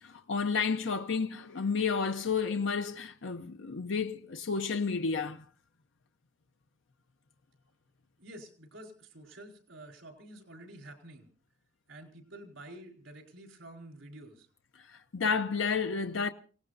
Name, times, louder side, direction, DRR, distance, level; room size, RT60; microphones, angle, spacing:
voice 1, 0.0-5.4 14.9-16.3, left 5 dB, 75° left, 0.7 m, -31 dB
voice 2, 8.2-11.3 11.9-14.5, right 1 dB, 80° right, 4.4 m, -49 dB
28.0 x 17.5 x 2.6 m
head